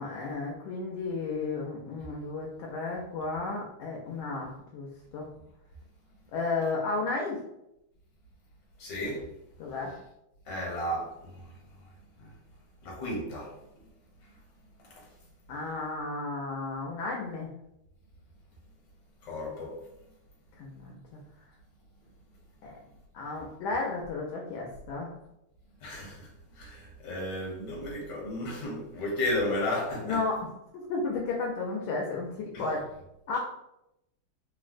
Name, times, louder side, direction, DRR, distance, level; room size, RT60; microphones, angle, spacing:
voice 1, 0.0-5.3 6.3-7.4 9.6-9.9 15.5-17.5 20.6-21.0 22.6-22.8 23.1-25.1 30.0-30.4 30.7-32.8 33.3-33.4, left 3 dB, 75° left, 1.3 m, -33 dB
voice 2, 8.8-9.3 10.4-11.5 12.2-12.3 12.8-13.8 19.2-19.8 25.8-30.2 32.5-32.6, left 1 dB, 60° left, 1.4 m, -34 dB
3.6 x 2.1 x 2.4 m
omnidirectional pair, 2.4 m